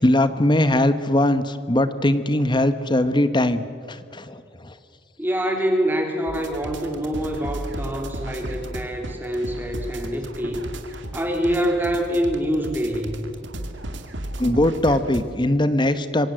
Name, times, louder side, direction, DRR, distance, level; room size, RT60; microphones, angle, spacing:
voice 1, 0.0-3.6 3.9-4.4 4.6-4.7 14.4-16.3, left 1 dB, 25° left, 12 dB, 1.0 m, -20 dB
voice 2, 5.2-13.2, equal, 10° right, 2 dB, 3.1 m, -25 dB
sound 1, 6.3-15.2, right 1 dB, 65° right, 2.3 m, -34 dB
26.0 x 23.5 x 7.7 m, 2.3 s
head